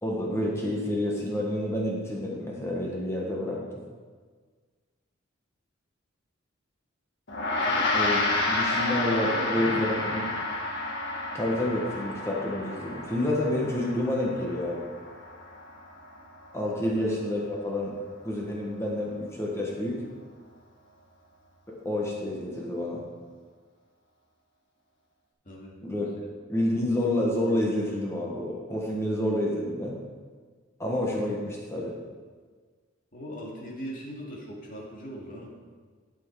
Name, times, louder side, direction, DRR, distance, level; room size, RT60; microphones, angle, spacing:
voice 1, 0.0-3.8 7.9-8.2 8.5-10.3 11.3-14.9 16.5-17.9 18.2-20.0 21.7-23.0 25.8-26.1 26.5-30.0 30.8-31.9, left 1 dB, 15° left, -3 dB, 1.4 m, -29 dB
Gong, 7.3-16.8, left 2 dB, 60° left, 1.6 m, -30 dB
voice 2, 7.6-7.9 8.7-10.1 25.4-25.8 33.1-35.8, equal, 40° left, -3 dB, 2.3 m, -40 dB
12.0 x 6.3 x 4.7 m, 1.5 s
head